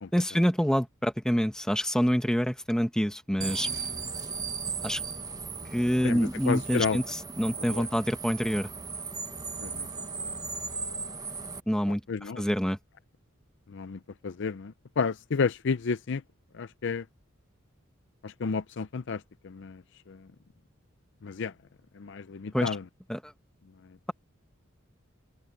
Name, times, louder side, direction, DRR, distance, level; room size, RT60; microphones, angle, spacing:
voice 1, 0.1-3.7 4.8-5.0 5.7-8.7 11.7-12.0 12.4-12.8 22.5-22.7 23.1-23.3, equal, 5° left, 1.4 m, -26 dB
sound 1, 3.4-11.6, right 5 dB, 20° right, 1.2 m, -36 dB
voice 2, 6.0-7.0 7.6-7.9 9.6-9.9 12.1-12.4 13.7-16.2 16.5-17.1 18.2-20.3 21.2-21.5 21.9-22.8, left 5 dB, 60° left, 0.5 m, -32 dB
open air
head